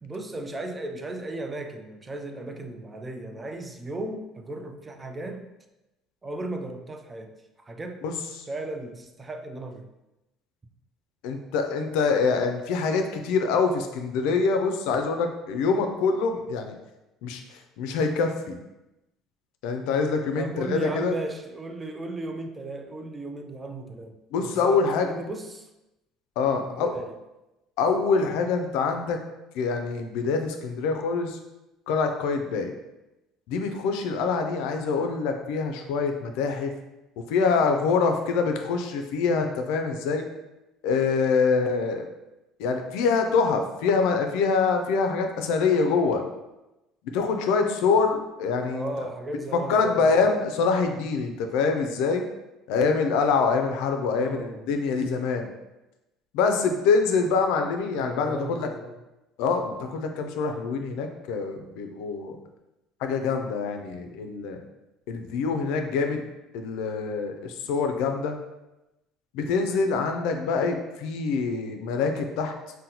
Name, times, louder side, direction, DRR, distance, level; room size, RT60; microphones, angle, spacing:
voice 1, 0.0-5.5 6.2-7.3 7.7-8.0 8.5-9.9 20.4-25.7 26.5-27.2 48.7-50.2 54.1-54.7 58.0-59.0, right 2 dB, 20° right, 5 dB, 0.3 m, -36 dB
voice 2, 11.2-16.7 17.2-18.6 19.6-21.1 24.3-25.1 26.4-26.9 27.8-29.2 29.5-31.4 31.9-32.7 33.5-36.7 37.2-40.3 40.8-42.0 42.6-46.2 47.1-48.9 49.5-52.2 52.7-55.5 56.3-58.7 59.4-62.4 63.0-64.6 65.1-66.2 66.5-68.4 69.3-72.5, left 4 dB, 80° left, 5 dB, 0.4 m, -25 dB
3.8 x 2.1 x 2.8 m, 0.97 s
cardioid pair, 115°, 0 cm